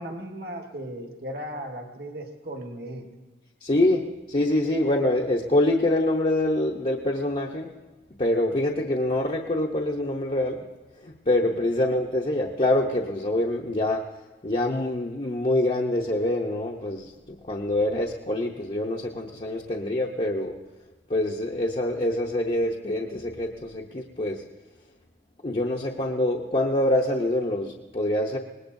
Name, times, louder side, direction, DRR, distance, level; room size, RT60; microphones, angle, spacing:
voice 1, 0.0-3.1, right 1 dB, 50° right, 3 dB, 1.4 m, -36 dB
voice 2, 3.6-4.0 4.3-7.7 8.2-10.7 11.0-14.0 14.4-17.1 17.5-20.5 21.1-24.4 25.4-28.4, left 1 dB, 35° left, -1 dB, 0.7 m, -25 dB
24.5 x 19.5 x 2.6 m, 1.2 s
head